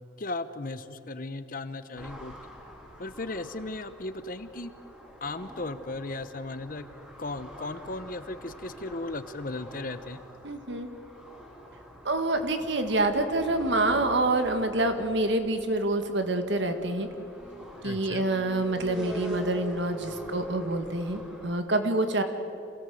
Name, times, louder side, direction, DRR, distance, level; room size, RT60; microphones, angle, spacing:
voice 1, 0.2-2.4 3.0-4.7 5.2-6.9 7.2-10.2 17.8-18.2, left 2 dB, 45° left, 12 dB, 0.8 m, -36 dB
sound 1, 2.0-21.6, equal, 5° right, 2.7 m, -46 dB
voice 2, 10.4-10.9 12.1-17.1 17.8-22.2, right 2 dB, 65° right, 7 dB, 1.8 m, -27 dB
26.5 x 17.0 x 7.7 m, 2.9 s
head